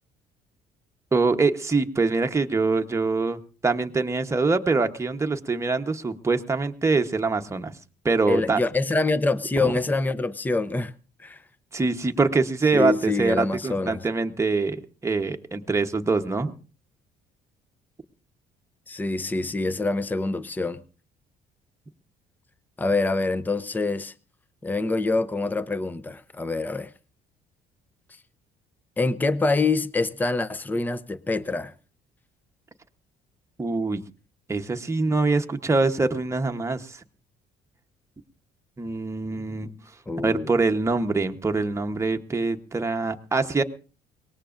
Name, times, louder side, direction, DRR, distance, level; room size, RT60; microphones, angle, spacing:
voice 1, 1.1-7.7 8.0-8.6 9.6-9.7 11.7-16.5 33.6-34.0 34.5-37.0 38.8-39.7 40.2-43.6, right 3 dB, 15° right, 1.0 m, -24 dB
voice 2, 8.3-10.9 11.2-11.4 12.7-14.0 18.9-20.8 22.8-24.1 24.6-26.9 29.0-31.7 40.1-40.5, left 3 dB, 10° left, 0.6 m, -25 dB
22.5 x 19.0 x 2.6 m
cardioid pair, 110°, 17 cm